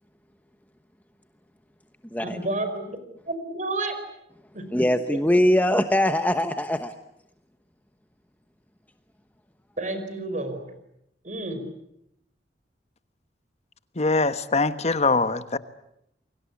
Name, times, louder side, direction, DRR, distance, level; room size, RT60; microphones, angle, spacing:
voice 1, 2.2-3.0 3.3-4.0 4.5-4.7 9.8-10.6 11.2-11.6, right 2 dB, 45° right, 5.2 m, -30 dB
voice 2, 4.7-6.9, left 1 dB, 10° left, 1.0 m, -22 dB
voice 3, 14.0-15.6, left 3 dB, 40° left, 1.2 m, -23 dB
29.0 x 24.0 x 8.5 m
head